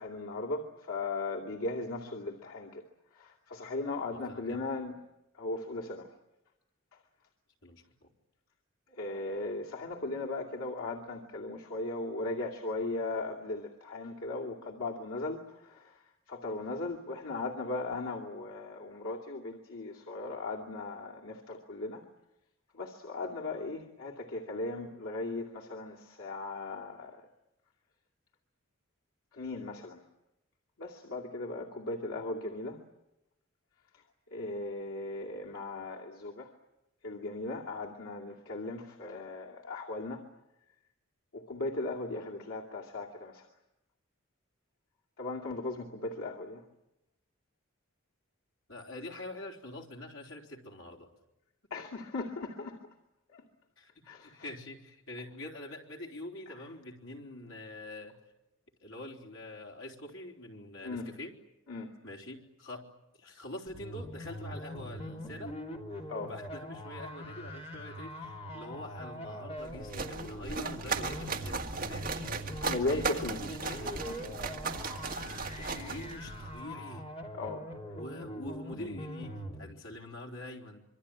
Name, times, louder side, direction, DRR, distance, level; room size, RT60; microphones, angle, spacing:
voice 1, 0.0-2.8 3.1-5.0 5.4-6.1 9.0-16.0 16.3-22.0 22.7-27.2 29.3-30.0 30.8-32.8 34.3-36.5 37.0-40.2 41.3-43.5 45.2-46.6 51.7-52.8 53.3-53.4 54.1-54.3 60.8-61.1 61.7-61.9 66.1-66.3 72.6-73.8 74.1-74.4 75.6-75.9 77.3-77.6, left 2 dB, 90° left, -2 dB, 2.5 m, -37 dB
voice 2, 4.1-4.6 7.6-8.1 48.7-51.1 53.8-58.2 58.8-61.4 62.0-62.9 63.2-65.6 66.2-72.3 72.8-74.1 75.5-77.1 77.9-80.8, left 1 dB, 75° left, 1 dB, 4.0 m, -45 dB
sound 1, 63.7-79.7, equal, 30° left, 3.0 m, -42 dB
sound 2, 69.6-76.6, right 4 dB, 40° right, 1.9 m, -37 dB
26.0 x 24.0 x 8.9 m, 0.93 s
head